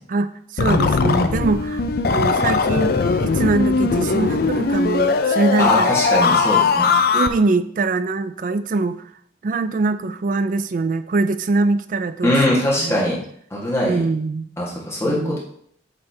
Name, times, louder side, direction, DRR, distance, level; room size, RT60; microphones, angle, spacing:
voice 1, 0.1-1.8 2.1-6.0 7.1-9.0 9.4-13.0 13.8-14.5 15.0-15.4, right 3 dB, 45° right, 12 dB, 0.4 m, -23 dB
sound 1, 0.6-7.3, left 4 dB, 55° left, 0.4 m, -19 dB
voice 2, 5.6-6.9 12.2-13.2 13.5-14.0 14.6-15.4, left 1 dB, 15° left, -5 dB, 1.7 m, -21 dB
8.1 x 3.3 x 4.3 m, 0.66 s
head